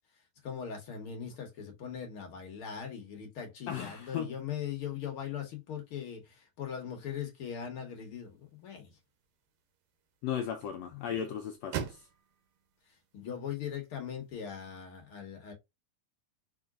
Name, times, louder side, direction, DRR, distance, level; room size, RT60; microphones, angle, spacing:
voice 1, 0.4-9.0 10.9-11.1 12.9-15.5, left 8 dB, 55° left, 1.6 m, -40 dB
voice 2, 3.7-4.3 10.2-12.1, left 9 dB, 85° left, 1.5 m, -36 dB
sound 1, 8.2-14.3, right 10 dB, 75° right, 2.1 m, -46 dB
4.7 x 4.2 x 2.3 m
omnidirectional pair, 3.6 m